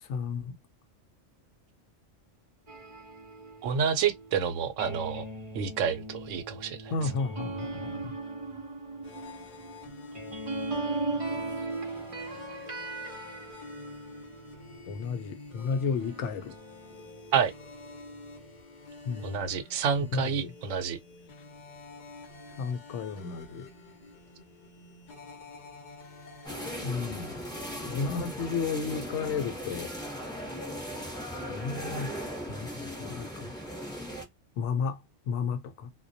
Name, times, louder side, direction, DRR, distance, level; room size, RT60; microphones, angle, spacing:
voice 1, 0.0-0.6 6.9-8.2 14.9-16.5 19.0-19.4 20.0-20.5 22.6-23.7 26.8-27.3 27.8-29.9 31.5-32.2 32.5-33.5 34.6-35.9, left 5 dB, 75° left, 0.9 m, -33 dB
sound 1, 2.7-15.2 15.7-18.6, right 2 dB, 40° right, 0.6 m, -39 dB
voice 2, 3.6-5.2 5.5-6.8 17.3-17.5 19.2-21.0, right 7 dB, 90° right, 1.0 m, -28 dB
sound 2, 9.0-28.8, left 3 dB, 45° left, 0.7 m, -48 dB
sound 3, 26.4-34.2, equal, 5° left, 0.6 m, -38 dB
2.2 x 2.2 x 2.5 m
omnidirectional pair, 1.3 m